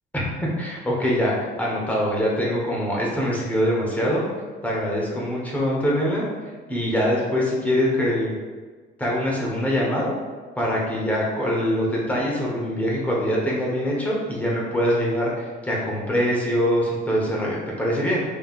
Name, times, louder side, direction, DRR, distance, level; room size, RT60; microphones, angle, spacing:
voice 1, 0.6-4.2 4.6-6.2 6.7-8.3 9.0-10.1 10.6-18.2, equal, 10° left, -4 dB, 1.1 m, -23 dB
5.6 x 3.2 x 2.5 m, 1.4 s
cardioid pair, 115°, 19 cm